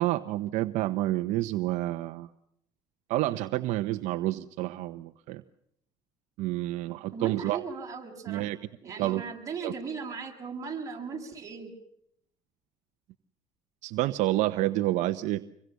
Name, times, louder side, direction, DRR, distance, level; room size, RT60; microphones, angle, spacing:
voice 1, 0.0-2.3 3.1-5.4 6.4-7.6 8.3-8.6 9.0-9.2 9.6-9.7 13.8-15.4, right 16 dB, 70° right, 9 dB, 1.1 m, -29 dB
voice 2, 7.1-8.5 8.8-11.7, right 5 dB, 25° right, 0 dB, 7.1 m, -38 dB
26.5 x 23.0 x 6.8 m, 0.74 s
cardioid pair, 125°, 13 cm